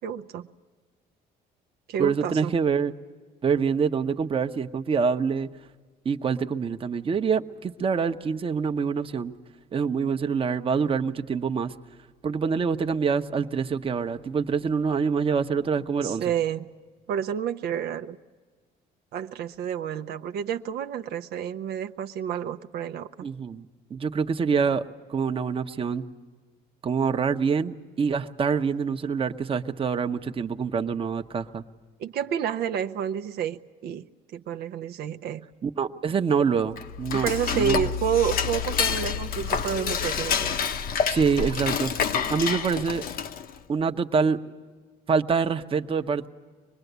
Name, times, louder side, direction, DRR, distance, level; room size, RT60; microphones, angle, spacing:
voice 1, 0.0-0.5 1.9-2.5 16.0-16.7 17.1-18.2 19.1-23.3 32.0-34.1 34.3-35.5 37.1-40.6, right 8 dB, 70° right, 7 dB, 0.7 m, -29 dB
voice 2, 2.0-2.9 3.4-5.5 6.0-9.3 9.7-11.7 12.2-16.2 23.2-24.8 25.1-26.0 26.8-31.6 35.6-37.9 41.1-43.0 43.7-44.4 45.1-46.3, right 6 dB, 35° right, 7 dB, 0.9 m, -26 dB
Dishes pots and pans / Cutlery silverware, 36.7-43.6, left 7 dB, 60° left, 1.0 m, -28 dB
24.5 x 20.5 x 8.1 m, 1.5 s
cardioid pair, 110°, 17 cm